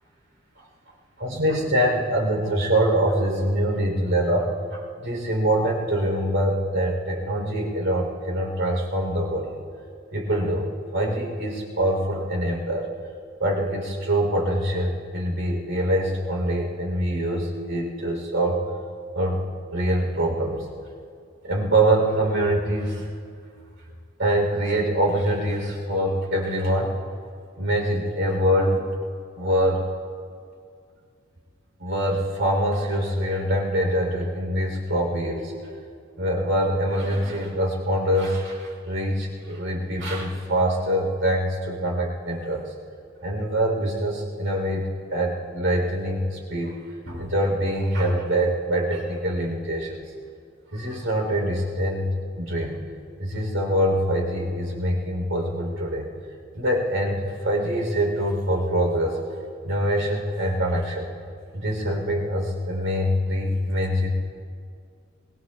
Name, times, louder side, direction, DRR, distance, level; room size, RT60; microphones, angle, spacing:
voice 1, 1.2-9.5 10.1-12.9 13.4-18.6 19.1-19.4 19.7-20.7 21.4-23.1 24.2-26.9 27.6-28.9 29.4-29.9 31.8-35.5 36.2-42.7 43.2-44.8 45.1-50.0 50.7-52.1 52.4-52.8 53.2-56.1 56.5-59.2 59.6-61.1 61.5-64.1, right 1 dB, 65° right, 0 dB, 3.7 m, -24 dB
26.5 x 22.0 x 2.4 m, 2.2 s
head